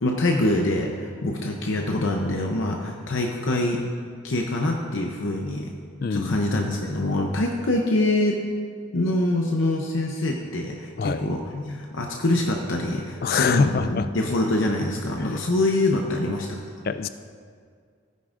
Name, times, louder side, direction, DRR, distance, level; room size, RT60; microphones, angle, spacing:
voice 1, 0.0-3.8 4.2-5.7 6.1-8.4 8.9-16.6, left 2 dB, 65° left, 1 dB, 0.7 m, -25 dB
voice 2, 6.0-6.4 11.0-11.2 13.2-14.1 15.2-15.4 16.8-17.1, left 5 dB, 45° left, 11 dB, 0.4 m, -24 dB
16.5 x 9.4 x 2.5 m, 2.1 s
head